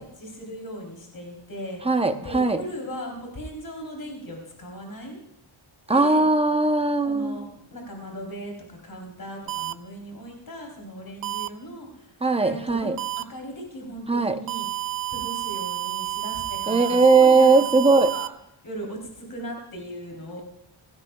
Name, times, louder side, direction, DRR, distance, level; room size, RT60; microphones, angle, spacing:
voice 1, 0.0-1.8 2.2-5.2 5.9-6.3 7.0-12.9 13.2-14.7 15.1-18.3 18.6-20.4, equal, 45° left, 1 dB, 3.5 m, -38 dB
voice 2, 1.8-2.6 5.9-7.4 12.2-13.0 14.1-14.4 16.7-18.1, right 3 dB, 10° right, 8 dB, 0.7 m, -19 dB
sound 1, 9.5-9.7 11.2-11.5 13.0-13.2 14.5-18.3, right 14 dB, 50° right, 0.5 m, -30 dB
17.0 x 15.0 x 2.3 m, 0.80 s
wide cardioid pair, 125°, 49 cm